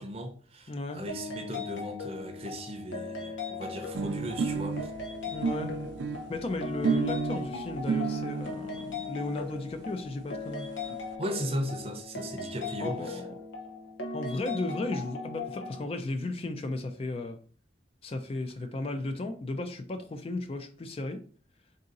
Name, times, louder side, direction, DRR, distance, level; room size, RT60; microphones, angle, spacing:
voice 1, 0.0-4.9 11.2-13.2, equal, 30° right, 0.6 m, -37 dB
voice 2, 0.7-1.0 5.3-5.8 6.3-10.7 12.8-13.2 14.1-17.4 18.0-21.2, left 2 dB, 30° left, 0.3 m, -35 dB
sound 1, 1.1-15.8, left 3 dB, 85° left, 0.8 m, -38 dB
sound 2, 3.9-8.5 9.4-9.5 9.7-9.8 10.1-10.2 10.4-11.0, right 5 dB, 75° right, 0.3 m, -32 dB
3.7 x 2.7 x 3.7 m
head